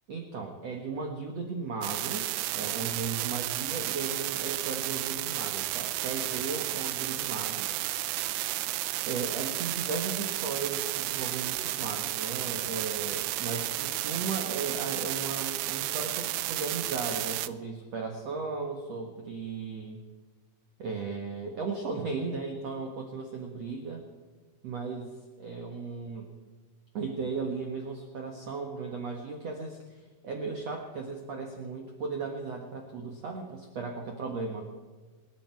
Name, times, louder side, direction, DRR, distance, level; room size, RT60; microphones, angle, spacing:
voice 1, 0.1-7.7 9.1-20.0 20.8-24.0 24.6-26.3 26.9-34.7, right 4 dB, 50° right, 2 dB, 2.3 m, -36 dB
sound 1, 1.8-17.5, right 16 dB, 85° right, 2.6 m, -32 dB
28.5 x 10.5 x 4.7 m, 1.4 s
omnidirectional pair, 4.6 m